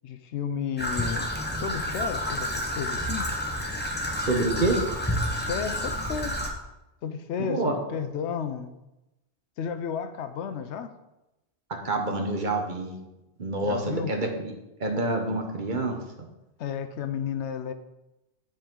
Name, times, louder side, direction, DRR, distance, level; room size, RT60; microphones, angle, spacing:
voice 1, 0.0-1.3 1.5-3.3 5.4-6.4 7.0-8.7 9.6-10.9 13.6-14.2 16.6-17.7, left 7 dB, 80° left, 10 dB, 0.9 m, -32 dB
Traffic noise roadway noise / Trickle dribble, 0.8-6.5, equal, 10° left, 0.8 m, -30 dB
voice 2, 4.2-4.8 7.4-7.7 11.8-13.0 13.4-14.5 14.8-16.0, right 2 dB, 45° right, 3 dB, 1.1 m, -27 dB
9.4 x 5.1 x 3.8 m, 0.96 s
omnidirectional pair, 1.2 m